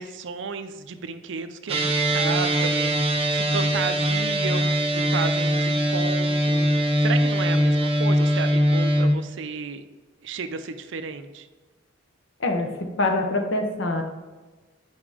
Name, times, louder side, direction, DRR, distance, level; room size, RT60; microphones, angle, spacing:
voice 1, 0.0-4.7 4.9-9.8 10.2-11.5, right 5 dB, 65° right, 10 dB, 0.5 m, -33 dB
sound 1, 1.7-9.1, equal, 30° right, 0.8 m, -22 dB
voice 2, 13.0-14.0, left 2 dB, 70° left, 4 dB, 0.9 m, -24 dB
5.3 x 4.8 x 4.9 m, 1.2 s
head